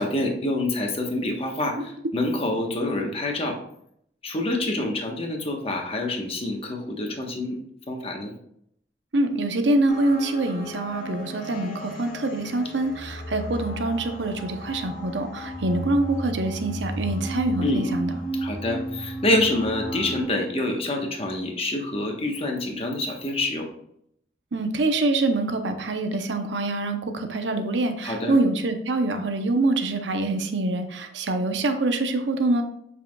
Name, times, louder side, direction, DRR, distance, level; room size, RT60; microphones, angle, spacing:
voice 1, 0.0-3.6 4.2-7.6 7.9-8.3 17.6-17.9 18.4-23.7 28.0-28.3, left 1 dB, 35° left, 2 dB, 1.2 m, -26 dB
voice 2, 9.1-18.2 24.5-32.6, right 2 dB, 80° right, 6 dB, 0.8 m, -25 dB
sound 1, 9.9-20.2, right 1 dB, 55° left, 1.4 m, -33 dB
7.5 x 5.6 x 2.3 m, 0.70 s
head